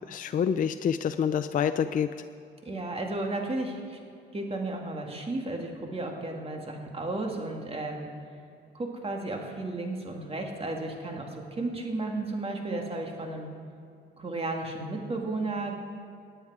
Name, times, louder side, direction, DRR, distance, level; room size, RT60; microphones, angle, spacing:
voice 1, 0.1-2.1, left 8 dB, 45° left, 11 dB, 0.4 m, -27 dB
voice 2, 2.6-4.0 4.3-8.1 8.7-13.5 14.2-15.8, right 2 dB, 30° right, 2 dB, 2.1 m, -33 dB
18.0 x 9.0 x 4.8 m, 2.4 s
cardioid pair, 90°, 20 cm